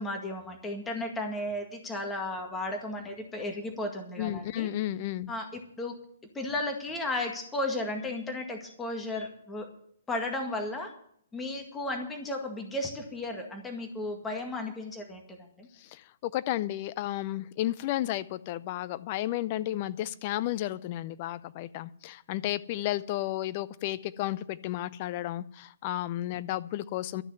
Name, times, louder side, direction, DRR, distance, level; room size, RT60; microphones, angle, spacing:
voice 1, 0.0-4.7 5.3-5.9 6.3-9.7 10.1-10.9 11.3-15.7, left 2 dB, 10° left, 3 dB, 1.9 m, -34 dB
voice 2, 4.2-5.3 15.9-27.2, left 14 dB, 40° left, 16 dB, 0.5 m, -32 dB
12.5 x 6.3 x 9.4 m, 0.66 s
figure-of-eight pair, 125°, 0 cm